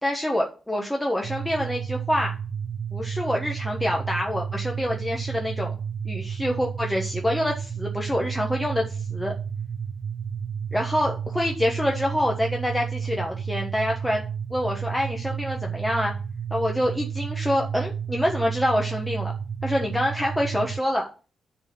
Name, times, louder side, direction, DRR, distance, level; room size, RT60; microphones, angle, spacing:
voice 1, 0.0-2.3 2.9-5.8 6.0-9.3 10.7-14.2 14.5-16.1 16.5-19.3 19.6-21.1, equal, 5° left, 0 dB, 1.2 m, -26 dB
sound 1, 1.2-20.8, right 7 dB, 40° right, 0.5 m, -32 dB
10.5 x 4.2 x 5.5 m, 0.34 s
wide cardioid pair, 135°, 0 cm